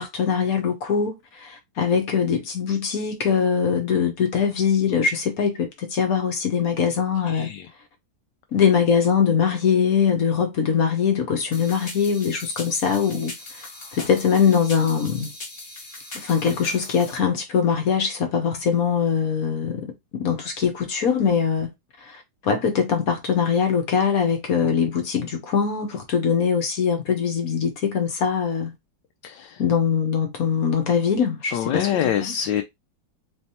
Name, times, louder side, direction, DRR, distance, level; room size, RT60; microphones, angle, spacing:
voice 1, 0.0-7.5 8.5-15.3 16.1-21.7 22.0-28.7 29.6-32.5, left 6 dB, 60° left, 1.3 m, -22 dB
sound 1, 11.5-17.2, left 2 dB, 35° left, 1.2 m, -39 dB
voice 2, 29.2-29.6 31.5-32.6, left 10 dB, 80° left, 1.2 m, -25 dB
4.2 x 3.2 x 2.8 m
omnidirectional pair, 1.9 m